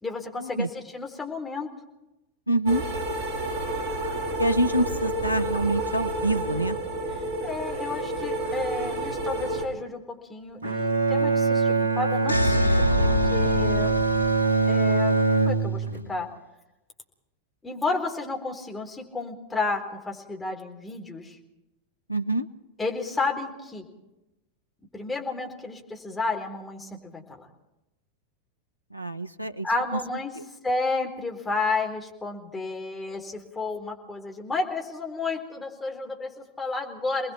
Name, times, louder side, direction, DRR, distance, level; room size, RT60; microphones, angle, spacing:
voice 1, 0.0-1.7 7.4-12.7 13.0-13.9 14.7-16.3 17.6-21.4 22.8-23.8 24.9-27.4 29.6-30.3 30.6-37.3, left 3 dB, 10° left, 1 dB, 4.2 m, -31 dB
voice 2, 2.5-2.8 4.4-6.8 22.1-22.5 28.9-29.7, right 1 dB, 90° left, 9 dB, 1.0 m, -26 dB
sound 1, 2.7-9.7, right 1 dB, 40° right, 4.4 m, -30 dB
Bowed string instrument, 10.6-16.1, right 3 dB, 65° right, 2.0 m, -23 dB
sound 2, 12.3-15.2, left 1 dB, 85° right, 2.5 m, -26 dB
29.0 x 21.0 x 4.5 m, 0.94 s
figure-of-eight pair, 90°, 0 cm